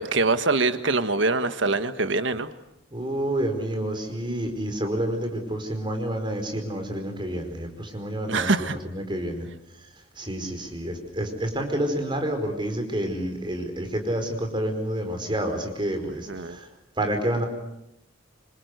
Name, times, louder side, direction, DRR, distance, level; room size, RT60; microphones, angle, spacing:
voice 1, 0.0-2.5 8.3-8.8 16.3-16.6, right 3 dB, 75° right, 10 dB, 1.5 m, -24 dB
voice 2, 2.9-8.5 8.9-9.5 10.2-16.7 17.0-17.5, right 1 dB, 25° right, 6 dB, 4.9 m, -29 dB
27.0 x 26.5 x 8.2 m, 0.81 s
head